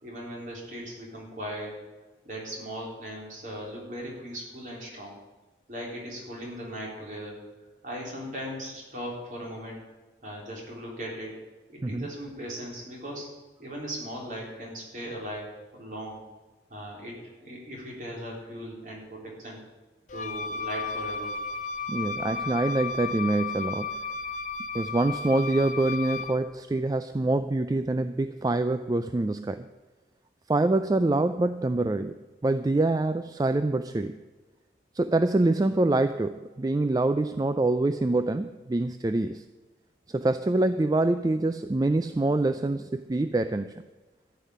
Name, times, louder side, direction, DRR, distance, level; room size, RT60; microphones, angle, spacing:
voice 1, 0.0-1.8 2.2-5.2 5.7-7.4 7.8-9.8 10.2-11.3 11.7-13.3 13.6-16.2 16.7-19.6 20.1-21.3, equal, 45° right, -2 dB, 3.9 m, -38 dB
Wind instrument woodwind instrument, 20.1-26.4, left 4 dB, 45° left, 0.5 m, -34 dB
voice 2, 21.9-24.0 24.7-29.7 30.5-32.1 32.4-34.2 34.9-39.4 40.1-43.7, right 2 dB, 20° right, 10 dB, 0.3 m, -25 dB
13.5 x 5.7 x 9.3 m, 1.2 s
head